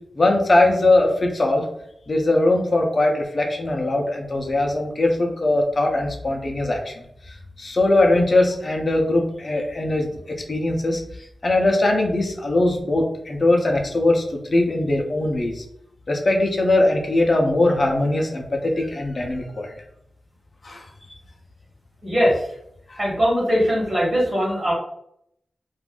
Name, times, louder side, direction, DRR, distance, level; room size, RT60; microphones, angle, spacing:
voice 1, 0.2-1.7 2.1-10.1 10.5-11.0 11.4-15.6 16.1-19.7 20.6-20.9 22.9-23.0, left 2 dB, 30° left, 1 dB, 0.5 m, -20 dB
voice 2, 22.0-22.5 23.0-24.7, equal, 25° right, -4 dB, 1.2 m, -20 dB
2.5 x 2.4 x 3.6 m, 0.74 s
wide cardioid pair, 170°, 0 cm